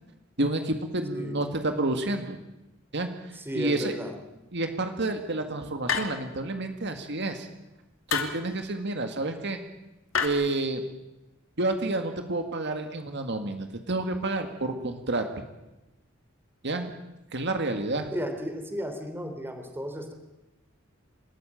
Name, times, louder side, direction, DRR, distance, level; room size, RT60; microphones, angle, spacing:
voice 1, 0.4-2.4 2.9-3.1 3.5-3.9 4.5-7.5 8.1-9.6 10.2-10.8 11.6-15.2 16.6-16.9 17.3-18.1, right 2 dB, 60° right, 6 dB, 2.1 m, -29 dB
voice 2, 3.3-4.1 18.1-20.1, equal, 10° right, 5 dB, 3.3 m, -34 dB
sound 1, 5.9-6.4 8.1-8.5 10.1-10.3, left 6 dB, 80° left, 2.7 m, -28 dB
28.0 x 14.0 x 9.0 m, 1.0 s
head